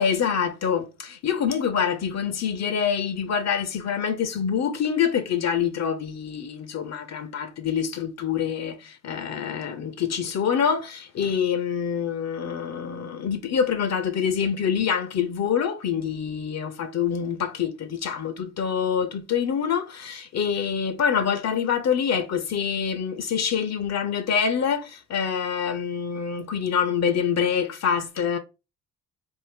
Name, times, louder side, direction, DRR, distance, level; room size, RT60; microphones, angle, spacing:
voice 1, 0.0-28.4, left 7 dB, 50° left, 0.6 m, -26 dB
2.7 x 2.0 x 3.5 m
hypercardioid pair, 50°, 35 cm